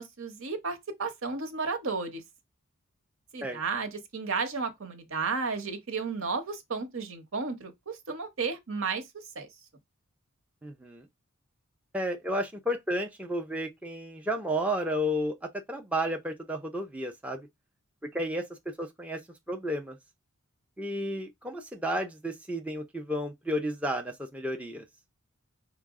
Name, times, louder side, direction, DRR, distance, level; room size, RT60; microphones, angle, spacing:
voice 1, 0.0-2.2 3.3-9.0 9.3-9.5, right 4 dB, 65° right, 1.0 m, -33 dB
voice 2, 10.6-11.1 11.9-17.5 18.1-19.2 19.5-20.0 20.8-24.9, equal, 5° right, 0.5 m, -32 dB
5.5 x 2.0 x 3.5 m
head